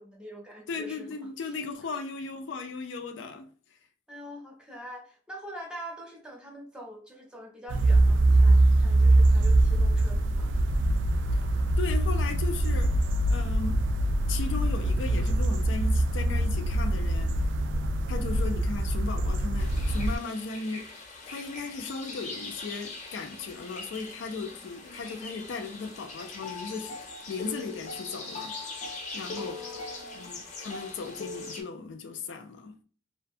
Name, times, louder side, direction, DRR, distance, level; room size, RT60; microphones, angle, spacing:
voice 1, 0.0-1.1 1.4-1.5 1.9-2.0 4.1-10.5 17.7-17.9 24.5-24.6 29.4-30.3, equal, 5° right, 0.6 m, -44 dB
voice 2, 0.7-3.5 11.8-13.0 13.3-13.8 14.3-17.3 18.1-20.9 21.3-27.0 27.3-28.6 29.1-29.8 30.1-32.7, left 4 dB, 85° left, 0.4 m, -36 dB
sound 1, 7.7-20.2, right 1 dB, 80° right, 0.3 m, -23 dB
sound 2, 19.6-31.6, left 3 dB, 40° left, 0.6 m, -41 dB
2.5 x 2.2 x 2.5 m
head